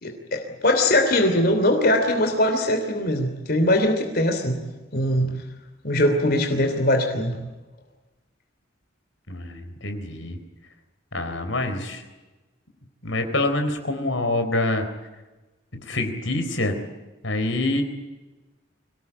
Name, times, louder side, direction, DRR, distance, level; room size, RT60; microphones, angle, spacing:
voice 1, 0.0-4.6 4.9-5.3 5.8-7.4, left 1 dB, 50° left, 5 dB, 3.1 m, -21 dB
voice 2, 9.3-10.4 11.1-12.0 13.0-14.9 15.7-16.7 17.2-17.8, left 2 dB, 80° left, 6 dB, 4.0 m, -26 dB
25.0 x 18.0 x 9.9 m, 1.1 s
head